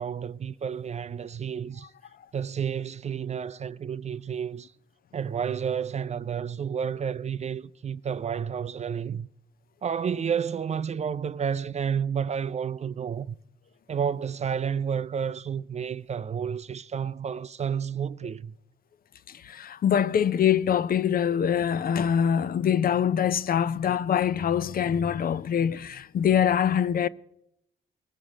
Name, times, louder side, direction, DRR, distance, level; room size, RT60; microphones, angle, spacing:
voice 1, 0.0-1.9 2.3-4.7 5.1-9.3 9.8-13.4 13.9-18.5, right 7 dB, 35° right, 0.4 m, -30 dB
voice 2, 19.3-27.1, left 8 dB, 45° left, 0.5 m, -24 dB
20.0 x 7.0 x 6.2 m
cardioid pair, 90°, 20 cm